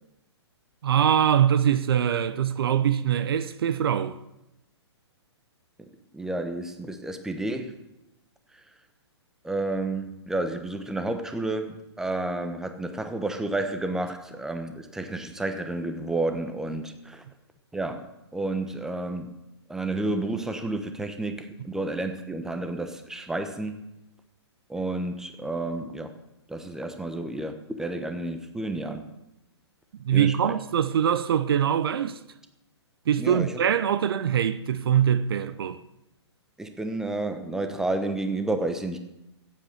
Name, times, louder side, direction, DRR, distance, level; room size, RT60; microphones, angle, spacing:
voice 1, 0.8-4.2 30.0-32.2 33.1-35.8, right 9 dB, 55° right, 0.7 m, -23 dB
voice 2, 6.1-7.7 9.4-17.2 17.7-18.0 18.3-19.3 19.7-23.8 24.7-26.1 26.5-29.0 30.1-30.3 33.2-33.5 36.6-39.0, right 2 dB, 5° right, 1.1 m, -30 dB
15.0 x 8.6 x 6.7 m
figure-of-eight pair, 120°, 14 cm